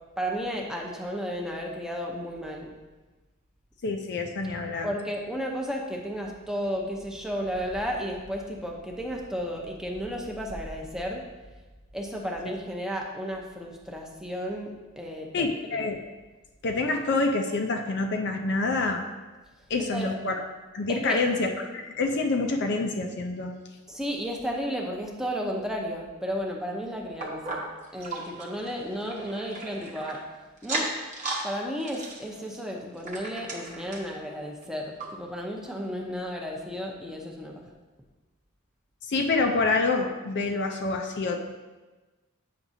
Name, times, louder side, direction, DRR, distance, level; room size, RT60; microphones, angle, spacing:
voice 1, 0.2-2.7 4.8-11.2 11.9-15.5 15.7-15.9 19.8-20.1 20.9-21.2 23.9-27.6 27.9-30.2 30.6-30.9 31.4-37.6, equal, 5° right, 0 dB, 0.7 m, -33 dB
voice 2, 3.8-4.9 15.3-16.0 16.6-19.0 19.7-20.4 20.7-23.5 39.1-41.4, left 3 dB, 50° left, 3 dB, 0.5 m, -27 dB
sound 1, 27.2-30.2 30.6-31.5 31.8-34.1 34.6-34.7 35.0-35.1 35.7-35.8, right 3 dB, 35° right, 1.0 m, -36 dB
8.5 x 5.9 x 2.7 m, 1.2 s
head